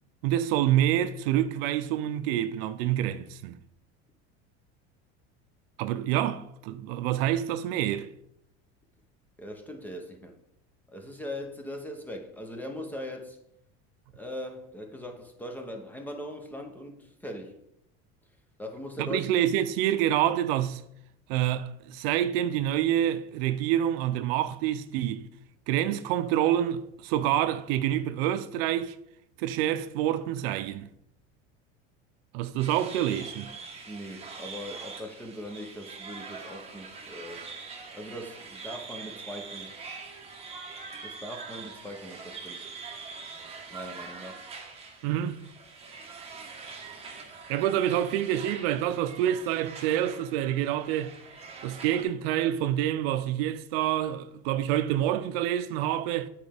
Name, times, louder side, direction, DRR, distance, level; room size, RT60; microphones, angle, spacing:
voice 1, 0.2-3.6 5.8-8.1 19.0-20.8 21.3-25.3 25.7-29.0 29.4-30.9 32.3-33.5 45.0-45.4 47.5-51.1 51.6-56.3, right 11 dB, 85° right, 0.6 m, -27 dB
voice 2, 9.4-10.4 10.9-13.4 14.1-17.6 18.6-19.2 33.9-37.5 37.9-39.8 41.0-42.7 43.7-44.4, left 1 dB, 5° left, 0.7 m, -40 dB
sound 1, 32.6-52.0, right 4 dB, 20° right, 1.1 m, -43 dB
8.6 x 4.4 x 3.4 m
cardioid pair, 145°, 29 cm